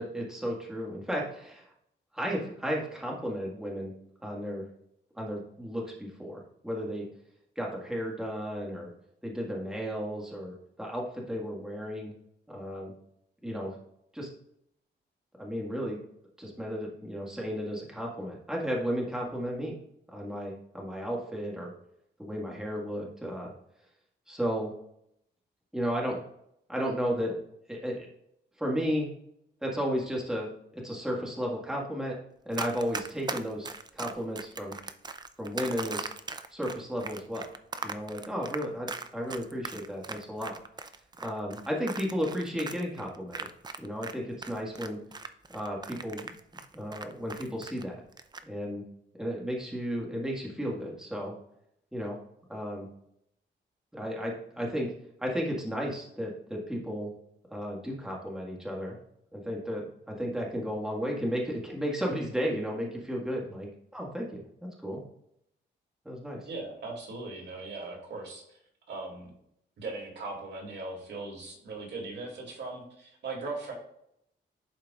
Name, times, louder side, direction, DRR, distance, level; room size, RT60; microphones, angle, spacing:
voice 1, 0.0-1.6 2.1-3.9 4.2-4.7 5.2-7.0 7.5-8.9 9.2-12.1 12.5-12.9 13.4-13.8 14.1-14.3 15.4-16.0 16.4-19.7 20.1-21.7 22.2-23.5 24.3-24.7 25.7-26.2 26.7-27.4 27.7-28.1 28.6-29.1 29.6-32.1 32.4-34.8 35.4-36.1 36.5-37.5 37.8-40.6 41.2-43.5 43.8-45.0 45.5-46.3 46.7-48.0 48.4-48.8 49.2-51.3 51.9-52.2 52.5-52.9 53.9-54.9 55.2-57.1 57.5-59.0 59.3-64.4 64.8-65.0 66.0-66.5, equal, 5° right, -2 dB, 1.7 m, -33 dB
Run, 32.5-44.1 44.4-47.8 48.1-48.4, right 4 dB, 20° right, 0.5 m, -39 dB
voice 2, 66.4-68.6 68.9-69.3 69.8-73.7, right 3 dB, 70° right, -1 dB, 2.5 m, -39 dB
11.0 x 4.5 x 2.4 m, 0.74 s
cardioid pair, 120°, 19 cm